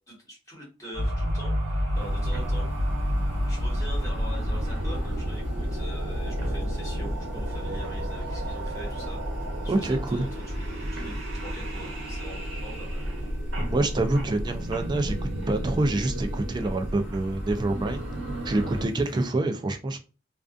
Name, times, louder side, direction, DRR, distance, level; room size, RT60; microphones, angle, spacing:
voice 1, 0.1-2.7 3.4-9.2 9.6-10.3 10.5-13.0, equal, 15° left, -4 dB, 1.3 m, -43 dB
sound 1, 0.9-18.9, equal, 75° right, 0.9 m, -30 dB
sound 2, 1.9-19.3, right 1 dB, 60° left, 0.6 m, -45 dB
voice 2, 9.7-10.3 13.7-18.0 18.4-20.0, right 2 dB, 25° right, 6 dB, 0.3 m, -26 dB
2.4 x 2.4 x 2.4 m, 0.34 s
head